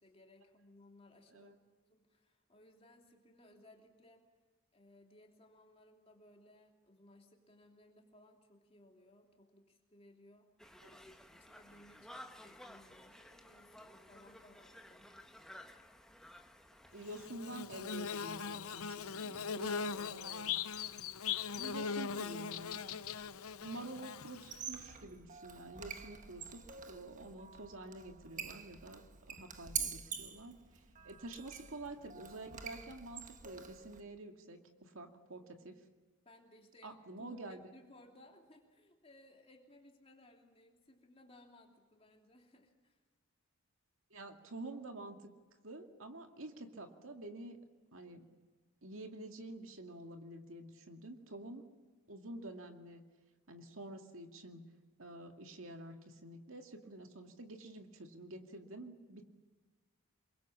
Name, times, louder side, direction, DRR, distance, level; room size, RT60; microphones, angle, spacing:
voice 1, 0.0-1.5 1.9-4.3 4.7-10.5 10.9-11.0 11.3-15.1 31.0-31.1 36.2-43.0, left 1 dB, 25° left, 1 dB, 3.0 m, -62 dB
Conversation, 10.6-17.3, left 1 dB, 5° left, 1.3 m, -55 dB
voice 2, 16.9-20.5 21.6-23.0 23.6-35.8 36.8-37.7 44.1-45.2 45.6-47.6 47.9-48.3 48.8-51.6 52.1-53.0 53.5-54.6 55.0-59.3, right 2 dB, 65° right, 4 dB, 2.3 m, -49 dB
Bird / Buzz, 17.1-24.8, left 6 dB, 80° left, 0.8 m, -40 dB
Squeak, 24.4-34.0, right 7 dB, 35° right, 1.3 m, -46 dB
27.5 x 23.0 x 7.4 m, 1.4 s
head